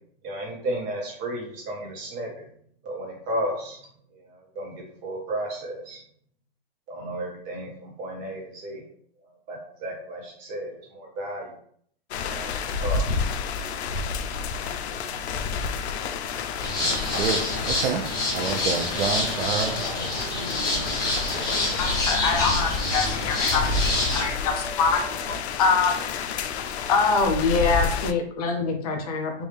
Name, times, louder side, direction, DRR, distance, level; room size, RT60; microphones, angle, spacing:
voice 1, 0.2-2.5 2.8-6.0 6.9-8.8 9.2-11.5 12.2-13.2, right 1 dB, 25° right, -2 dB, 1.1 m, -34 dB
sound 1, 12.1-28.1, left 5 dB, 90° left, 0.5 m, -30 dB
sound 2, 16.6-24.2, left 2 dB, 10° left, 1.1 m, -27 dB
voice 2, 16.8-19.8, right 6 dB, 70° right, 7 dB, 0.6 m, -29 dB
sound 3, 18.9-25.4, right 1 dB, 45° right, 1.5 m, -41 dB
voice 3, 21.8-23.6 24.1-25.0 25.6-25.9 26.9-29.4, left 4 dB, 35° left, 4 dB, 0.6 m, -24 dB
3.4 x 2.6 x 3.3 m, 0.63 s
hypercardioid pair, 155°, 32 cm